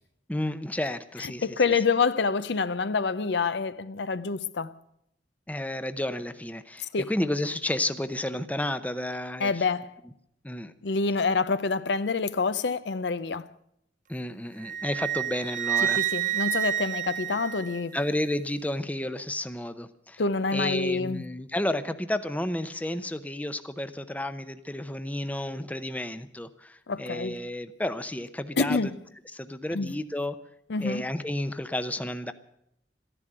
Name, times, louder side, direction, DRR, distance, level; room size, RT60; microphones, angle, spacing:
voice 1, 0.3-1.6 5.5-9.5 10.4-10.7 14.1-16.1 17.9-20.2 20.5-28.8 29.3-30.4 30.8-32.3, left 1 dB, 10° left, 0.7 m, -31 dB
voice 2, 1.2-4.7 6.9-7.1 9.4-9.9 10.8-13.5 15.8-17.9 20.2-21.3 26.9-27.4 28.6-28.9 29.7-30.0 30.7-31.0, left 4 dB, 70° left, 0.6 m, -27 dB
Wind instrument woodwind instrument, 14.6-18.1, right 11 dB, 45° right, 0.8 m, -29 dB
14.0 x 11.0 x 9.0 m
head